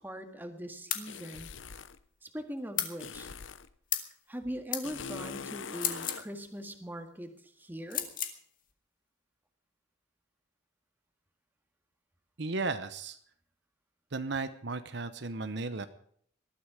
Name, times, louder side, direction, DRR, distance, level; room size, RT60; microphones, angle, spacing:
voice 1, 0.0-1.5 2.2-3.3 4.3-8.0, equal, 10° right, 6 dB, 1.8 m, -41 dB
sound 1, 0.9-1.1 2.8-3.0 3.9-4.1 4.7-4.9 5.7-6.3 7.9-8.4, left 9 dB, 45° left, 2.0 m, -33 dB
sound 2, 1.1-2.0 3.0-3.7 4.8-6.3, left 6 dB, 70° left, 0.8 m, -42 dB
voice 2, 12.4-13.2 14.1-15.9, right 3 dB, 60° right, 10 dB, 0.9 m, -35 dB
20.0 x 13.0 x 5.0 m, 0.62 s
head